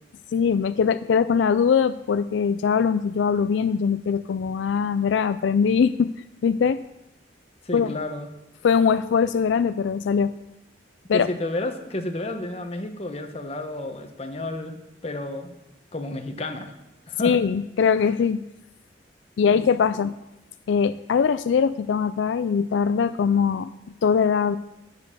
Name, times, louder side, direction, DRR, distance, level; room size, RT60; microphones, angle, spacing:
voice 1, 0.3-6.1 6.4-6.8 7.7-8.0 8.6-10.3 11.1-11.3 17.2-18.4 19.4-20.1 20.7-23.7 24.0-24.6, left 6 dB, 80° left, 13 dB, 0.3 m, -21 dB
voice 2, 7.6-8.3 11.1-14.8 15.0-15.5 15.9-16.7 17.1-17.3 19.4-19.6, left 2 dB, 35° left, 5 dB, 1.1 m, -31 dB
10.0 x 6.9 x 6.8 m, 0.93 s
head